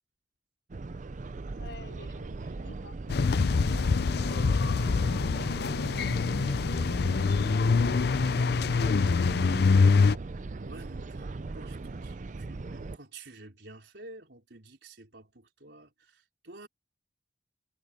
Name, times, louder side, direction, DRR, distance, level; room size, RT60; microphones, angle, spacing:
sound 1, 0.7-13.0, right 3 dB, 45° right, 0.5 m, -39 dB
voice 1, 1.6-3.0 4.2-4.8 5.2-6.1 6.4-9.0, left 3 dB, 85° left, 5.1 m, -50 dB
sound 2, 3.1-10.2, left 4 dB, 60° left, 0.5 m, -25 dB
voice 2, 5.4-6.5 10.6-16.7, right 2 dB, 70° right, 4.4 m, -50 dB
head